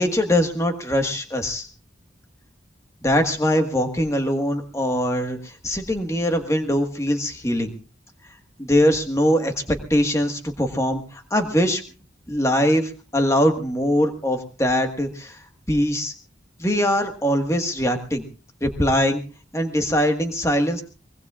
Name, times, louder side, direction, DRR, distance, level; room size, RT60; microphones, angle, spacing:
voice 1, 0.0-1.7 3.0-7.7 8.6-11.8 12.3-15.4 15.7-16.1 16.6-18.2 18.6-19.2 19.5-20.8, equal, 15° left, 5 dB, 1.5 m, -22 dB
23.5 x 20.5 x 2.4 m, 0.35 s
head